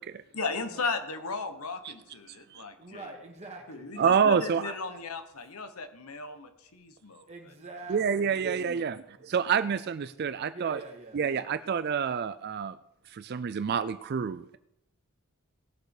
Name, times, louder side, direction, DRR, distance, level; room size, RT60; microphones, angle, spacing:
voice 1, 0.3-3.0 3.7-7.2, left 4 dB, 80° left, 8 dB, 1.3 m, -36 dB
voice 2, 2.8-5.0 7.3-8.6 8.9-9.1 10.5-11.5, right 2 dB, 30° right, 1 dB, 2.2 m, -46 dB
voice 3, 4.0-4.7 7.9-10.8 11.1-12.7 13.1-14.6, right 6 dB, 45° right, 12 dB, 0.4 m, -28 dB
18.0 x 6.5 x 4.9 m, 0.82 s
head